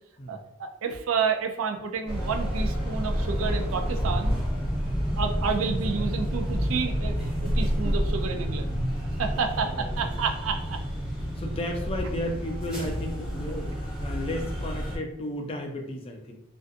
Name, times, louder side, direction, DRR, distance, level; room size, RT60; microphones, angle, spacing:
voice 1, 0.3-4.3 5.2-8.8 9.2-10.8, right 5 dB, 80° right, 5 dB, 0.3 m, -30 dB
sound 1, 2.1-15.0, equal, 5° right, 0.7 m, -29 dB
voice 2, 9.6-10.2 11.4-16.4, left 1 dB, 25° left, 2 dB, 0.4 m, -34 dB
2.5 x 2.2 x 2.5 m, 0.85 s
head